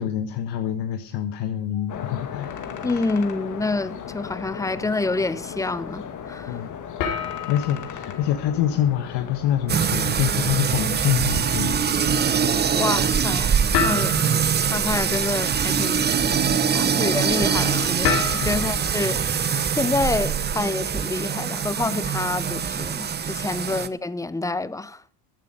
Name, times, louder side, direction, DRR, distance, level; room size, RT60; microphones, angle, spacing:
voice 1, 0.0-3.1 6.4-6.7 7.5-12.1 13.8-14.1 16.2-16.4 18.4-18.7 23.7-23.8, left 11 dB, 60° left, 1.3 m, -26 dB
sound 1, 1.7-3.3 3.6-4.0 4.6-4.7 7.0-20.0, left 5 dB, 80° left, 3.9 m, -33 dB
sound 2, 1.9-13.2, left 7 dB, 40° left, 2.0 m, -37 dB
voice 2, 2.8-6.6 12.7-14.4 14.7-16.5 16.7-25.0, left 3 dB, 5° left, 0.6 m, -28 dB
sound 3, 9.7-23.9, right 7 dB, 20° right, 0.8 m, -23 dB
14.0 x 9.2 x 5.2 m
hypercardioid pair, 90°, 47 cm